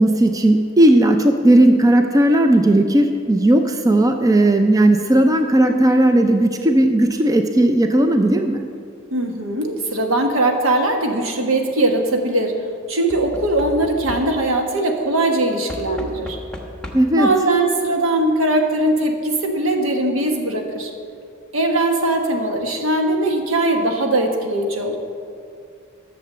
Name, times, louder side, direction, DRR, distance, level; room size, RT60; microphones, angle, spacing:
voice 1, 0.0-8.7 16.9-17.3, right 1 dB, 15° right, 6 dB, 0.4 m, -15 dB
voice 2, 9.1-12.5 12.9-16.4 17.2-20.9 21.5-25.0, right 2 dB, 70° right, 3 dB, 1.3 m, -20 dB
Knock / Wood, 10.9-11.4 13.1-14.6 15.7-17.3 18.3-18.4 18.6-18.7, left 1 dB, 5° left, 1.1 m, -35 dB
11.5 x 6.8 x 6.7 m, 2.3 s
head